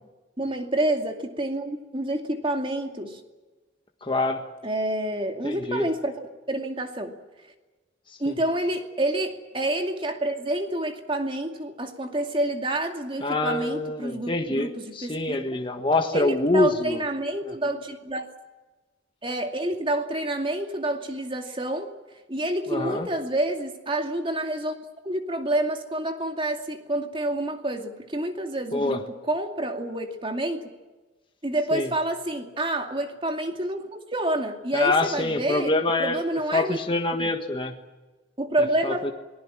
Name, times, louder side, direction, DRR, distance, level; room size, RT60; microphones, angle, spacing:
voice 1, 0.4-3.2 4.6-7.2 8.2-15.4 16.1-18.3 19.2-21.9 22.3-24.7 25.0-29.0 29.3-30.7 31.4-35.7 36.0-36.8 37.2-37.3 38.4-39.0, right 1 dB, 30° right, 4 dB, 2.4 m, -28 dB
voice 2, 4.0-4.4 5.4-5.8 13.2-17.0 22.7-23.1 28.7-29.0 31.7-31.9 34.7-36.2 36.5-37.8 38.8-39.1, left 2 dB, 25° left, 4 dB, 1.5 m, -25 dB
28.5 x 20.0 x 7.5 m, 1.2 s
head